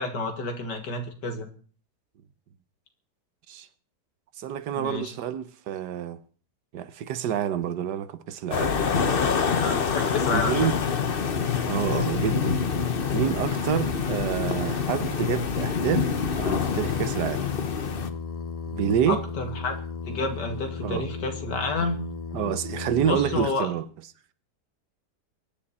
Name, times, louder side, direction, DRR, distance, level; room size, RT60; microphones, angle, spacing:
voice 1, 0.0-1.5 4.7-5.1 9.6-10.7 19.1-19.8 20.1-22.0 23.1-23.7, left 3 dB, 85° left, 2.7 m, -29 dB
voice 2, 4.4-6.2 6.7-8.8 10.3-10.8 11.6-12.6 13.1-16.1 16.4-17.5 18.7-19.2 20.8-21.1 22.3-23.8, right 9 dB, 75° right, 1.5 m, -28 dB
sound 1, 8.5-18.1, left 6 dB, 40° left, 1.0 m, -26 dB
Singing, 15.6-23.5, left 4 dB, 55° left, 0.4 m, -36 dB
23.0 x 10.5 x 4.3 m
omnidirectional pair, 1.8 m